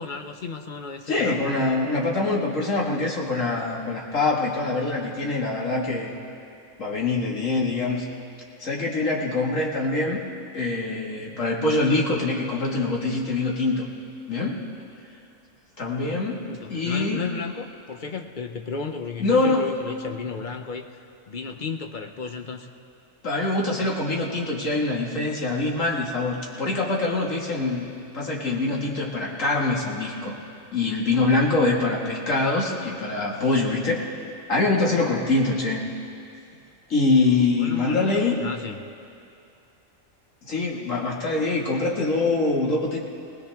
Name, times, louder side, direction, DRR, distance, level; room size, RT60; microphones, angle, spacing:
voice 1, 0.0-1.4 10.0-10.2 16.4-22.7 37.6-38.8, left 5 dB, 45° left, 5 dB, 0.7 m, -34 dB
voice 2, 1.1-6.1 6.8-8.1 8.6-10.2 10.5-13.9 14.3-14.6 15.8-16.4 16.7-17.3 19.2-19.7 23.2-30.4 30.7-34.0 34.5-35.8 36.9-38.4 40.5-43.0, left 3 dB, 70° left, -2 dB, 2.2 m, -24 dB
20.5 x 19.0 x 3.5 m, 2.6 s
omnidirectional pair, 1.4 m